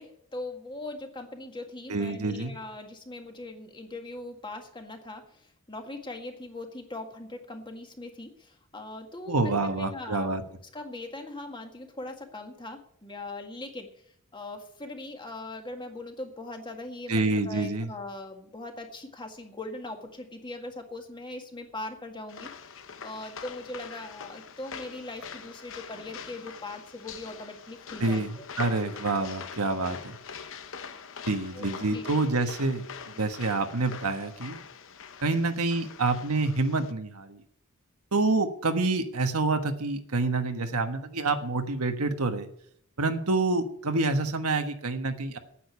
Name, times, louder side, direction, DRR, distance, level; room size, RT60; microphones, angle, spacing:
voice 1, 0.0-10.3 10.7-13.9 14.3-28.5 28.8-29.0 31.5-32.3, left 2 dB, 20° left, 4 dB, 1.8 m, -40 dB
voice 2, 1.9-2.5 9.3-10.4 17.1-17.9 28.0-28.3 28.6-30.2 31.3-34.6 35.2-37.4 38.1-42.5 43.0-45.4, right 3 dB, 80° right, 7 dB, 1.4 m, -27 dB
sound 1, 22.3-36.9, left 6 dB, 60° left, 0.9 m, -43 dB
9.3 x 8.9 x 9.5 m, 0.68 s
head